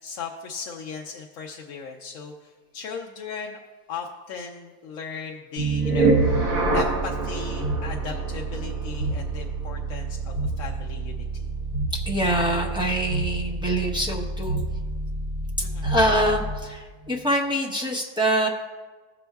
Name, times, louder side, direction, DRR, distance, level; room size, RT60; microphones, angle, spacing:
voice 1, 0.0-3.6 3.9-6.3 6.7-11.4 15.6-15.9, left 6 dB, 70° left, 1 dB, 0.9 m, -37 dB
sound 1, 5.6-16.7, right 3 dB, 65° right, 1.8 m, -27 dB
voice 2, 11.9-14.6 15.6-18.5, right 1 dB, 5° right, -2 dB, 0.7 m, -25 dB
15.5 x 6.1 x 2.3 m, 1.4 s
omnidirectional pair, 1.5 m